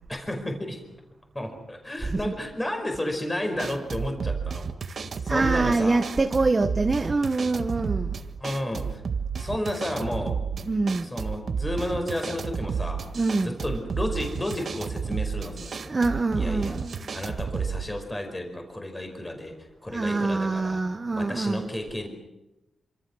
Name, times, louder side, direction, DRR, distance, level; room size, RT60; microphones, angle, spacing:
voice 1, 0.1-0.8 1.3-4.7 5.2-6.1 8.4-9.0 9.3-10.4 11.0-13.0 13.4-16.0 16.4-16.8 17.1-19.5 19.8-20.8 21.1-22.1, left 1 dB, 15° left, 5.0 m, -32 dB
sound 1, 3.6-17.8, right 6 dB, 50° right, 1.6 m, -31 dB
voice 2, 5.3-8.2 10.6-11.1 13.1-13.6 15.9-17.1 19.9-21.7, right 3 dB, 25° right, 1.1 m, -25 dB
28.5 x 26.5 x 6.3 m
wide cardioid pair, 155°, 0 cm